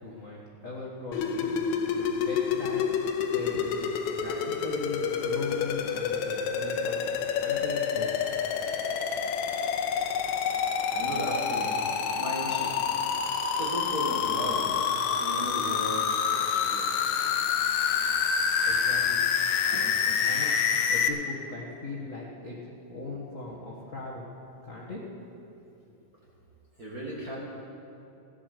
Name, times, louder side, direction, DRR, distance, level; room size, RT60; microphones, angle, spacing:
voice 1, 0.0-1.6 1.9-2.8 3.3-7.0 7.4-8.3 18.6-19.2 19.8-20.6 20.9-22.6 22.9-24.3 24.6-25.0, left 3 dB, 50° left, -5 dB, 0.9 m, -39 dB
sound 1, 1.1-21.1, left 7 dB, 75° left, 1.8 m, -28 dB
voice 2, 10.9-11.9 12.1-12.8 13.6-16.9 19.7-20.0 26.8-27.4, right 1 dB, 35° right, -4 dB, 1.7 m, -36 dB
16.0 x 9.9 x 6.7 m, 2.7 s
omnidirectional pair, 3.9 m